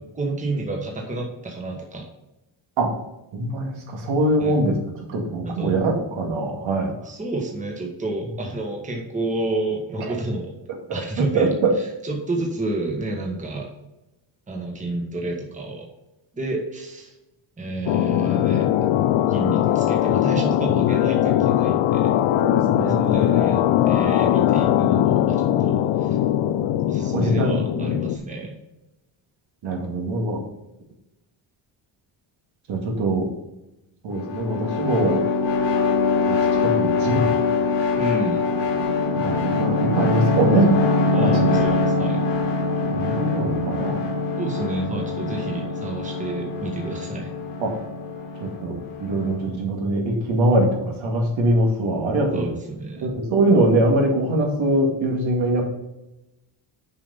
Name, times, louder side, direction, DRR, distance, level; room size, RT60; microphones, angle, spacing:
voice 1, 0.1-2.1 4.4-4.6 5.4-5.7 7.0-10.5 10.9-11.5 11.8-13.7 14.5-15.8 16.3-17.1 17.6-18.7 19.3-22.1 22.8-23.6 23.9-26.2 26.9-28.5 38.0-38.4 41.1-42.4 44.4-47.3 52.3-53.1, right 2 dB, 15° right, 1 dB, 1.3 m, -30 dB
voice 2, 3.3-4.8 5.1-6.9 11.3-11.5 22.3-23.4 27.1-27.9 29.6-30.4 32.7-33.3 34.0-35.2 36.3-36.4 36.6-37.3 39.2-40.8 41.2-41.5 42.9-44.2 47.6-47.8 48.6-52.5 53.0-55.6, right 1 dB, 75° right, 1 dB, 2.2 m, -22 dB
sound 1, 17.9-28.2, left 12 dB, 90° left, 0.6 m, -20 dB
sound 2, 34.1-49.6, left 3 dB, 60° left, 1.7 m, -23 dB
7.1 x 5.8 x 5.3 m, 0.94 s
cardioid pair, 180°, 47 cm